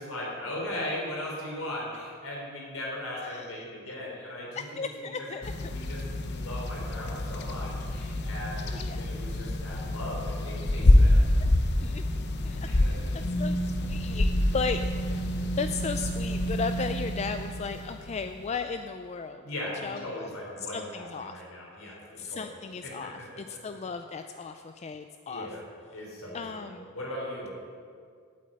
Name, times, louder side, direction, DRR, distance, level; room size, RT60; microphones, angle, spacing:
voice 1, 0.0-4.6 5.7-6.0 6.2-11.2 12.6-12.9 19.4-22.4 22.8-22.9 25.3-25.6 25.9-27.5, left 1 dB, 75° left, -3 dB, 3.4 m, -38 dB
voice 2, 3.1-3.9 4.5-5.5 8.0-8.2 8.7-9.0 11.4-11.5 11.8-12.0 12.4-12.8 13.1-19.5 19.8-21.4 21.8-25.5 26.3-26.9, left 5 dB, 30° left, 8 dB, 0.3 m, -36 dB
sound 1, 5.4-18.5, left 1 dB, 50° left, 0.7 m, -27 dB
8.5 x 8.5 x 8.6 m, 2.2 s
head